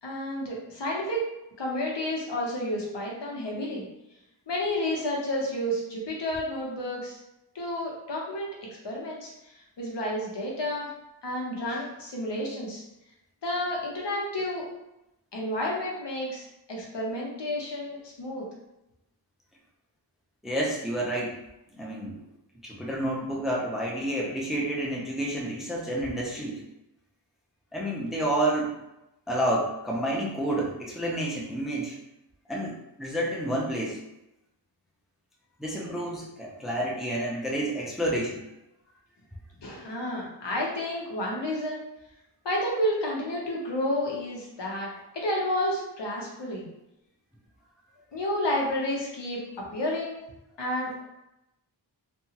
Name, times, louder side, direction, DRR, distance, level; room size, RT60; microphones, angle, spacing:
voice 1, 0.0-1.2 1.6-3.9 4.5-7.2 7.5-8.5 8.8-10.9 11.2-12.8 13.4-14.7 15.3-18.5 39.6-41.8 42.4-44.9 45.1-46.7 48.1-50.2 50.6-51.0, left 1 dB, 70° left, -3 dB, 0.9 m, -31 dB
voice 2, 20.4-21.4 21.7-22.2 22.6-26.6 27.7-28.7 29.3-32.0 32.5-34.0 35.6-38.4, right 1 dB, ahead, -3 dB, 0.5 m, -29 dB
2.8 x 2.3 x 2.8 m, 0.89 s
wide cardioid pair, 85°, 44 cm